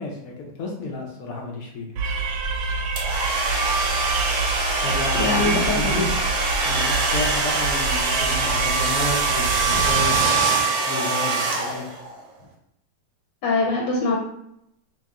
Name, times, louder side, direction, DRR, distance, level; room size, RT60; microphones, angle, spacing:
voice 1, 0.0-1.9 4.8-6.1 6.6-10.3 10.9-11.9, left 3 dB, 80° left, -1 dB, 0.7 m, -31 dB
sound 1, 2.0-10.5, right 3 dB, 80° right, 1.4 m, -27 dB
sound 2, 3.0-12.1, right 4 dB, 60° right, 1.1 m, -24 dB
voice 2, 5.2-6.1 13.4-14.2, left 3 dB, 65° left, -2 dB, 1.1 m, -23 dB
2.9 x 2.9 x 3.5 m, 0.75 s
omnidirectional pair, 2.2 m